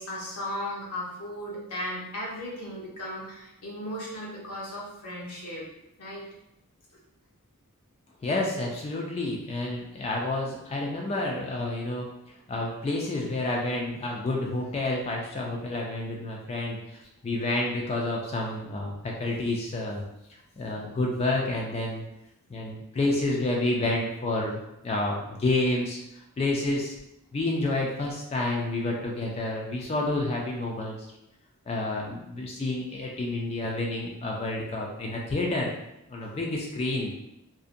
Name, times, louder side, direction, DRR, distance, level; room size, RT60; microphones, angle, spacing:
voice 1, 0.0-5.7 6.0-6.3, left 1 dB, 90° left, -4 dB, 0.8 m, -36 dB
voice 2, 8.2-12.1 12.5-16.8 17.2-20.0 20.6-22.0 22.5-26.0 26.4-26.9 27.3-31.0 31.7-35.7 36.1-37.1, left 2 dB, 30° left, -1 dB, 0.3 m, -29 dB
2.6 x 2.1 x 2.5 m, 0.86 s
head